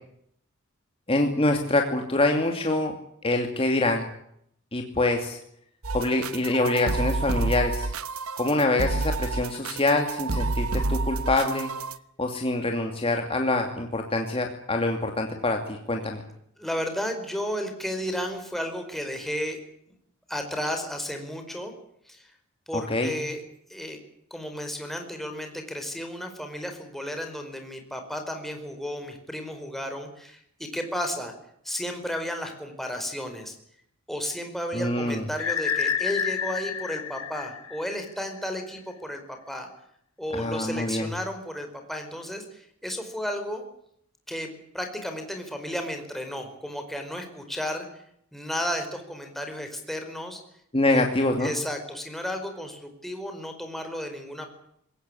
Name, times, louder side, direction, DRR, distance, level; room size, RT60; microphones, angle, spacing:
voice 1, 1.1-2.9 3.2-4.1 4.7-5.4 5.9-7.9 8.4-11.7 12.2-16.2 22.7-23.1 34.7-35.2 40.3-41.1 50.7-51.5, left 2 dB, 25° left, 3 dB, 2.6 m, -25 dB
sound 1, 5.8-12.0, right 2 dB, 90° right, 1.2 m, -29 dB
voice 2, 16.6-19.6 19.9-20.0 20.3-21.7 22.1-22.3 22.7-23.4 23.7-24.0 24.3-31.3 31.6-33.6 34.1-39.7 40.2-43.6 44.3-47.9 48.3-50.4 50.9-51.1 51.4-54.5, equal, ahead, 4 dB, 4.9 m, -33 dB
sound 2, 35.4-38.2, left 7 dB, 80° left, 1.6 m, -29 dB
21.5 x 18.5 x 9.8 m, 0.71 s
head